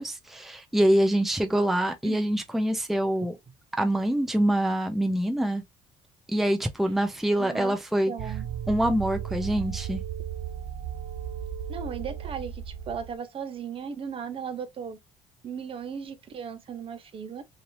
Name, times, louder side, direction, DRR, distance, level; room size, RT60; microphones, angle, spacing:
voice 1, 0.0-3.4 3.8-5.6 6.3-8.1 8.7-10.0, right 1 dB, ahead, 0.6 m, -25 dB
voice 2, 7.4-7.8 8.1-8.5 11.7-15.0 15.4-17.4, right 7 dB, 45° right, 0.7 m, -36 dB
sound 1, 8.2-13.2, right 9 dB, 80° right, 0.5 m, -35 dB
3.2 x 2.8 x 2.7 m
cardioid pair, 90°, 13 cm